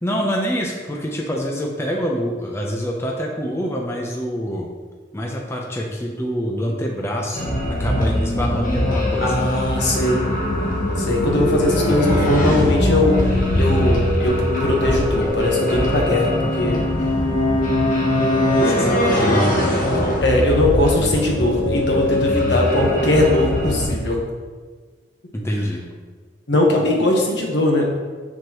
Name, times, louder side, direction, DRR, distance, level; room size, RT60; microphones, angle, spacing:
voice 1, 0.0-4.7 5.1-9.4 18.6-20.1 21.0-21.1 25.3-25.8, equal, 15° left, -1 dB, 0.6 m, -26 dB
sound 1, 7.3-23.9, left 1 dB, 50° left, 1.4 m, -21 dB
voice 2, 9.2-10.2 11.0-13.3 13.5-16.8 19.2-19.5 20.2-24.2 26.5-27.8, left 1 dB, 70° left, -1 dB, 1.3 m, -20 dB
6.5 x 6.2 x 3.0 m, 1.4 s
head